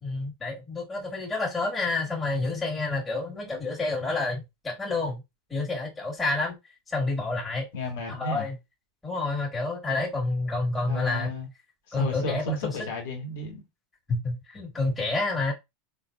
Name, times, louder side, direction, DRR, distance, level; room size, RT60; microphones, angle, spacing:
voice 1, 0.0-5.2 5.5-6.6 6.9-7.7 8.1-8.6 9.0-11.3 11.9-12.7 14.1-15.5, left 3 dB, 20° left, 2.2 m, -29 dB
voice 2, 7.7-8.5 9.8-10.0 10.9-11.5 11.9-13.7, left 1 dB, 70° left, 2.0 m, -33 dB
4.4 x 3.3 x 2.6 m
hypercardioid pair, 95°, 0 cm